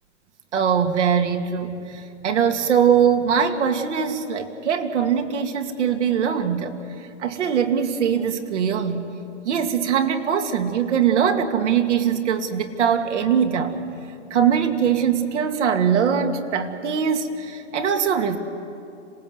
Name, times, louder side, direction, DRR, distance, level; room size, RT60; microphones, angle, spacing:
voice 1, 0.5-6.7 7.2-9.1 9.4-13.8 14.3-18.4, right 7 dB, 75° right, 5 dB, 2.4 m, -22 dB
26.5 x 18.5 x 8.0 m, 2.7 s
hypercardioid pair, 140°, 36 cm